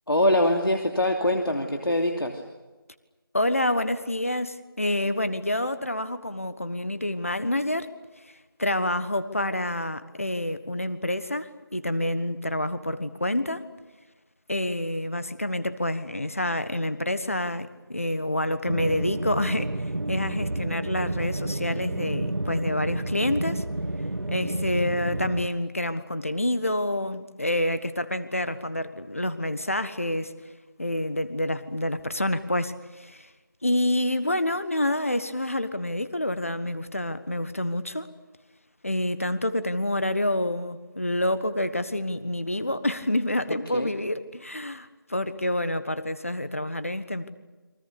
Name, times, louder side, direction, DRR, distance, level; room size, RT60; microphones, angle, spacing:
voice 1, 0.1-2.4 43.5-43.9, left 1 dB, 75° left, 2 dB, 3.0 m, -24 dB
voice 2, 3.3-7.9 8.6-13.6 14.5-23.6 24.3-30.3 30.8-33.3 33.6-38.1 38.8-47.3, left 1 dB, 35° left, 12 dB, 1.4 m, -28 dB
sound 1, 18.7-25.5, right 1 dB, 85° right, 1.4 m, -30 dB
29.5 x 24.0 x 6.9 m, 1.2 s
figure-of-eight pair, 180°, 12 cm